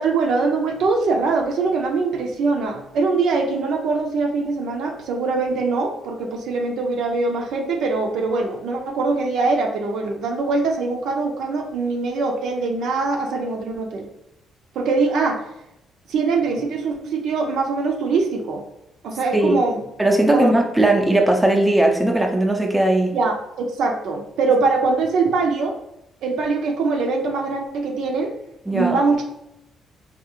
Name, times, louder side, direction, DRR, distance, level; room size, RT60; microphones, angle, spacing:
voice 1, 0.0-14.1 14.7-15.4 16.1-18.7 19.0-19.8 20.3-20.5 23.1-25.8 26.2-28.3 28.7-29.2, right 3 dB, 75° right, 2 dB, 0.6 m, -22 dB
voice 2, 20.0-23.2 28.7-29.0, right 1 dB, 10° right, 2 dB, 0.5 m, -18 dB
3.6 x 2.4 x 2.9 m, 0.84 s
cardioid pair, 90°, 0 cm